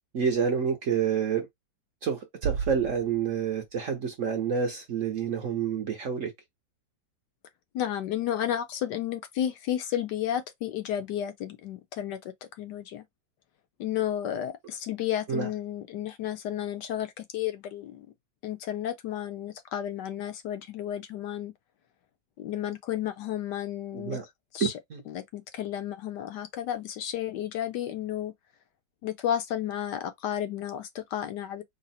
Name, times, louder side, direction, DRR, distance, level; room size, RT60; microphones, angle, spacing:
voice 1, 0.1-1.5 2.0-6.3 15.3-15.5 23.9-24.2 24.6-25.0, right 7 dB, 60° right, 0.9 m, -28 dB
Bass drum, 2.4-4.1, right 7 dB, 80° right, 1.3 m, -35 dB
voice 2, 7.7-12.2 12.6-13.0 13.8-18.1 18.4-21.5 22.4-24.2 24.5-24.7 25.1-28.3 29.0-31.6, left 11 dB, 70° left, 1.2 m, -32 dB
3.9 x 2.0 x 4.1 m
omnidirectional pair, 2.0 m